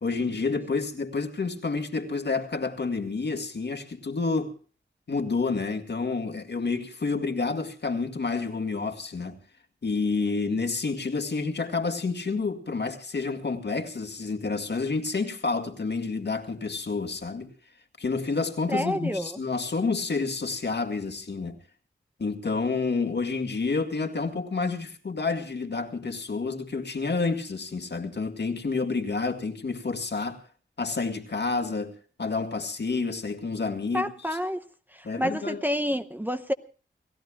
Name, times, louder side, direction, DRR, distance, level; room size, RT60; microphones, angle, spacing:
voice 1, 0.0-4.6 5.1-9.4 9.8-17.5 18.0-21.6 22.2-30.4 30.8-31.9 32.2-34.1 35.0-35.6, left 4 dB, 60° left, 2.0 m, -29 dB
voice 2, 18.7-19.4 33.9-34.6 34.9-36.5, equal, 10° right, 0.8 m, -29 dB
29.5 x 16.0 x 2.3 m
wide cardioid pair, 85°, 20 cm